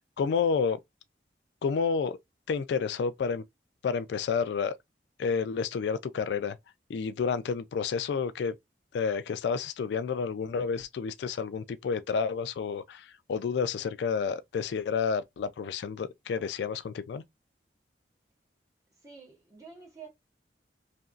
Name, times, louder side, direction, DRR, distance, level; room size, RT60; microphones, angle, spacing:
voice 1, 0.2-0.8 1.6-2.2 2.5-3.4 3.8-4.7 5.2-6.6 6.9-8.5 8.9-17.2, left 5 dB, 70° left, 0.3 m, -30 dB
voice 2, 19.0-20.1, right 5 dB, 20° right, 1.1 m, -48 dB
2.8 x 2.6 x 2.3 m
head